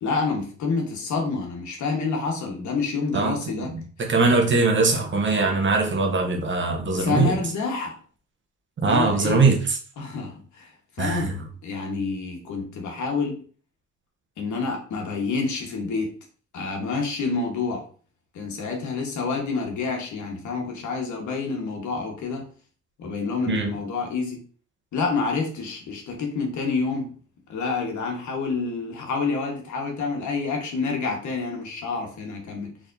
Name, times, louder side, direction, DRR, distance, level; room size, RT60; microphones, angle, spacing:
voice 1, 0.0-4.1 6.9-8.0 8.8-9.5 10.0-11.4 11.6-13.4 14.4-16.1 16.5-17.8 18.3-22.5 23.0-24.4 24.9-27.1 27.5-32.8, left 4 dB, 70° left, 1.3 m, -28 dB
voice 2, 3.1-3.7 4.0-7.3 8.8-9.8 11.0-11.3 23.5-23.7, right 3 dB, 40° right, 0.9 m, -21 dB
4.2 x 3.5 x 2.6 m
cardioid pair, 90°, 30 cm